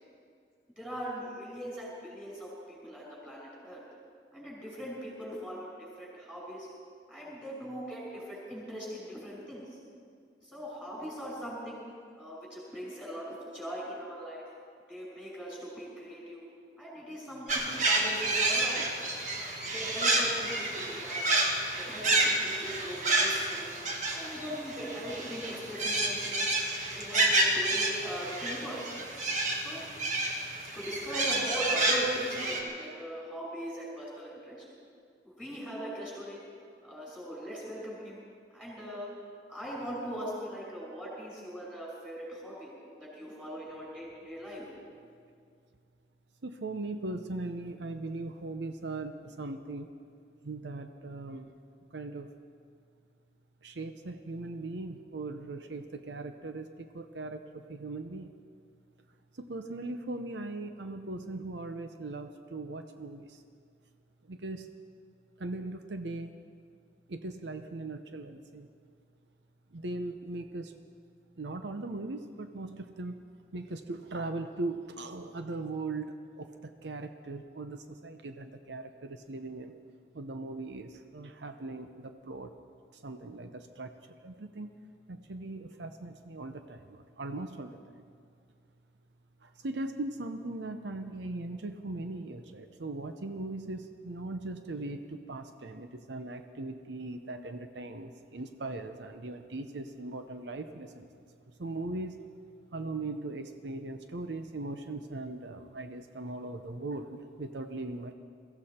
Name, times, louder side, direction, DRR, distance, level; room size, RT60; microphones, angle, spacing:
voice 1, 0.8-3.8 4.3-6.7 7.1-9.8 10.4-11.8 12.2-14.4 14.9-16.4 16.8-18.8 19.7-21.2 21.8-23.8 24.1-26.4 26.8-28.8 29.6-29.8 30.7-34.6 35.2-36.4 36.8-38.3 38.5-39.1 39.5-44.7, equal, 5° right, -4 dB, 5.4 m, -40 dB
sound 1, 17.5-32.6, right 2 dB, 40° right, 1.8 m, -29 dB
voice 2, 46.4-49.9 50.4-51.5 51.9-52.3 53.6-58.3 59.3-63.4 64.3-64.7 65.4-66.3 67.1-68.7 69.7-70.7 71.4-73.2 73.5-79.7 80.1-82.5 83.0-83.9 84.2-84.7 85.1-87.8 89.4-101.1 101.6-102.2 102.7-108.1, right 2 dB, 80° right, 7 dB, 0.7 m, -39 dB
22.5 x 15.0 x 4.3 m, 2.2 s
head